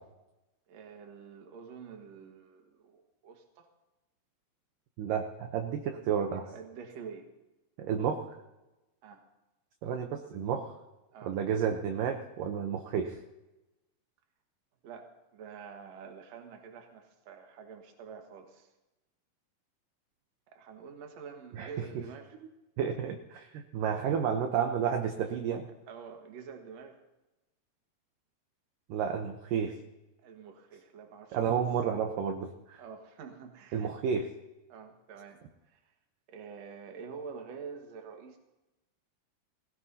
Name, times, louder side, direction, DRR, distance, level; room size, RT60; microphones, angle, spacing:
voice 1, 0.7-3.7 6.4-7.3 9.0-9.2 11.1-11.4 14.8-18.7 20.5-22.4 25.9-27.0 30.2-31.6 32.8-33.9 34.7-35.8 36.3-38.4, right 6 dB, 55° right, 3 dB, 2.2 m, -47 dB
voice 2, 5.0-6.5 7.8-8.3 9.8-10.7 11.2-13.2 21.5-21.7 22.8-25.7 28.9-29.8 31.3-32.8 33.7-34.3, right 7 dB, 70° right, 4 dB, 2.2 m, -31 dB
20.5 x 17.0 x 2.8 m, 1.0 s
omnidirectional pair, 4.6 m